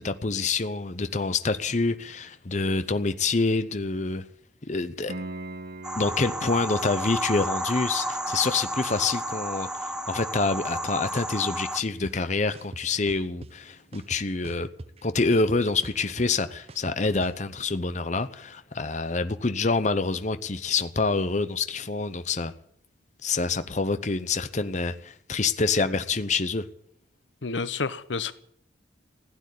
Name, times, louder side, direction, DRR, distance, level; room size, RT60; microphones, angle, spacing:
voice 1, 0.0-4.2 4.7-5.1 6.0-14.7 15.0-22.5 23.2-26.7, left 3 dB, 40° left, 0.8 m, -27 dB
Piano, 5.1-15.7 19.1-19.2, right 2 dB, 55° right, 1.9 m, -46 dB
sound 1, 5.8-11.8, right 1 dB, 5° right, 0.9 m, -32 dB
sound 2, 12.0-12.1 12.5-13.5 13.9-15.0 15.3-17.4, right 2 dB, 35° right, 0.7 m, -41 dB
voice 2, 27.4-28.3, left 4 dB, 85° left, 0.9 m, -29 dB
16.0 x 9.1 x 10.0 m
head